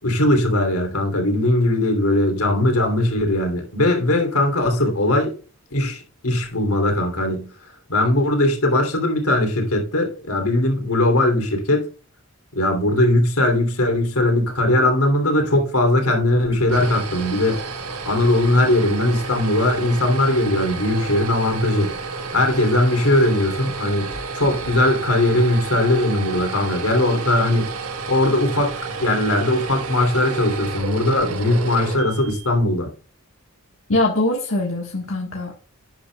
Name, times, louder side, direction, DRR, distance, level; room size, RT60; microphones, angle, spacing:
voice 1, 0.0-5.3 5.7-7.5 7.9-11.9 12.5-17.6 18.1-21.9 22.3-27.7 28.1-28.7 29.0-32.9, left 1 dB, 80° left, 3.1 m, -19 dB
sound 1, 16.4-32.6, right 4 dB, 85° right, 1.5 m, -31 dB
voice 2, 33.9-35.5, left 2 dB, 65° left, 1.6 m, -22 dB
11.5 x 9.1 x 2.4 m
head